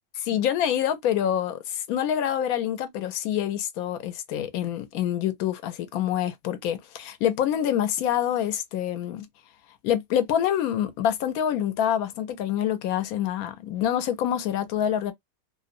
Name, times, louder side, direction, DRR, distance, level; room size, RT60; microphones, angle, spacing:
voice 1, 0.2-9.3 9.8-15.1, left 10 dB, 80° left, 1.0 m, -26 dB
2.6 x 2.0 x 2.5 m
omnidirectional pair, 1.5 m